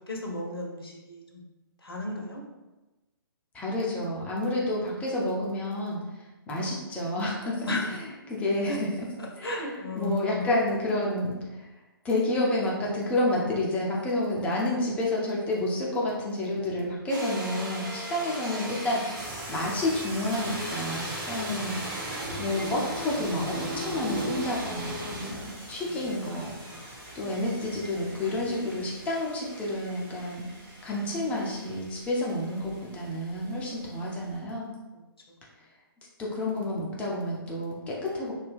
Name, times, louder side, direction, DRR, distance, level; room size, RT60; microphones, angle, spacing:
voice 1, 0.1-1.4 1.8-2.4 7.7-8.0 8.7-8.8 9.2-10.4 18.0-18.5 22.1-22.4 25.8-26.1 26.6-26.9 30.9-31.2 34.9-35.0, left 2 dB, 75° left, -1 dB, 0.6 m, -35 dB
voice 2, 3.5-6.0 6.5-7.7 8.3-8.9 9.4-11.7 12.0-21.9 22.2-30.5 30.8-34.7 36.2-38.3, left 1 dB, 10° left, -4 dB, 0.5 m, -30 dB
sound 1, 17.1-19.4 20.3-25.3, right 1 dB, 50° right, 0.7 m, -36 dB
sound 2, 19.1-34.3, right 1 dB, 20° right, 0.9 m, -42 dB
2.7 x 2.2 x 3.3 m, 1.1 s
figure-of-eight pair, 130°, 13 cm